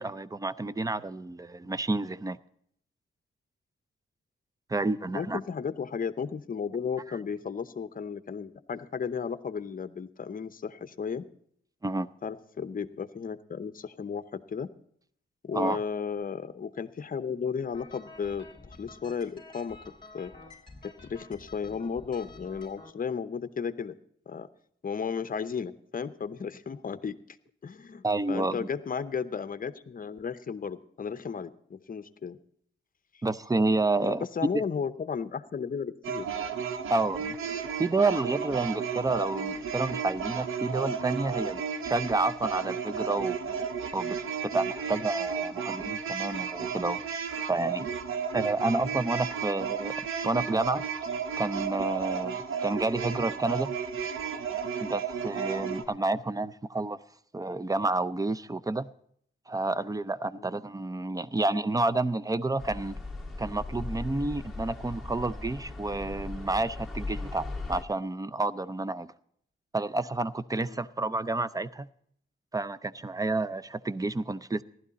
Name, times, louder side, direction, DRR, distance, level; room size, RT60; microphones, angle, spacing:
voice 1, 0.0-2.4 4.7-5.4 11.8-12.1 15.5-15.8 28.0-28.7 33.2-34.2 36.9-37.4 37.8-43.4 43.9-44.2 44.4-47.0 47.5-47.9 48.3-50.8 51.4-53.7 54.8-57.0 57.3-58.9 59.5-63.0 63.4-69.1 69.7-71.9 72.5-74.6, right 2 dB, 15° right, 0.5 m, -29 dB
voice 2, 5.1-11.3 12.2-14.7 15.4-19.8 20.1-20.3 20.8-24.0 24.3-24.5 24.8-27.2 27.6-32.4 34.0-36.3 60.4-60.5 70.6-70.8, left 6 dB, 40° left, 0.7 m, -34 dB
sound 1, 17.7-22.9, left 3 dB, 25° left, 2.0 m, -50 dB
sound 2, 36.0-55.9, right 6 dB, 80° right, 1.0 m, -33 dB
sound 3, 62.6-67.8, left 2 dB, ahead, 1.9 m, -38 dB
15.0 x 11.5 x 4.1 m
cardioid pair, 80°, 21 cm